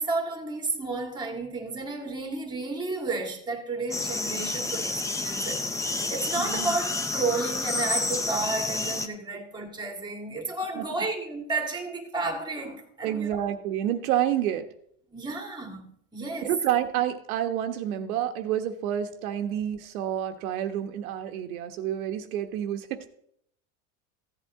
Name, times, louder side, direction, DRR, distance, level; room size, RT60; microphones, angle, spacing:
voice 1, 0.0-13.4 15.1-16.5, right 3 dB, 10° right, 1.9 m, -32 dB
sound 1, 3.9-9.1, left 2 dB, 10° left, 0.6 m, -29 dB
voice 2, 6.4-6.8 9.3-9.4 10.7-10.9 13.0-14.7 16.4-23.1, right 11 dB, 85° right, 1.2 m, -29 dB
15.5 x 8.1 x 3.6 m
supercardioid pair, 135°, 42 cm